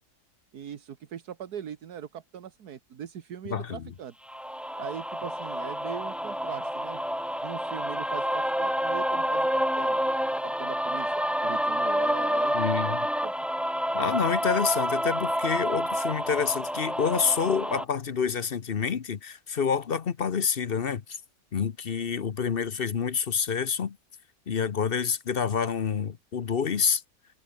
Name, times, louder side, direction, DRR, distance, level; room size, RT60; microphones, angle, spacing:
voice 1, 0.5-4.1 4.8-7.0 7.4-10.0 10.4-13.3, right 9 dB, 75° right, 1.8 m, -40 dB
voice 2, 3.5-3.8 12.5-13.1 13.9-21.2 21.5-24.0 24.5-27.0, left 6 dB, 45° left, 0.9 m, -28 dB
sound 1, 4.3-17.8, equal, ahead, 0.8 m, -28 dB
omnidirectional pair, 1.7 m